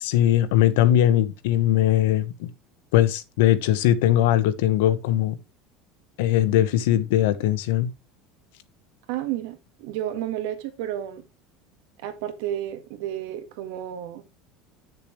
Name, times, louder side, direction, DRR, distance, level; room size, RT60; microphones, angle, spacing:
voice 1, 0.0-2.5 2.9-5.3 6.2-7.9, left 12 dB, 85° left, 1.1 m, -20 dB
voice 2, 9.1-11.2 12.0-14.2, right 11 dB, 70° right, 1.8 m, -31 dB
10.0 x 6.8 x 3.2 m
cardioid pair, 175°, 0 cm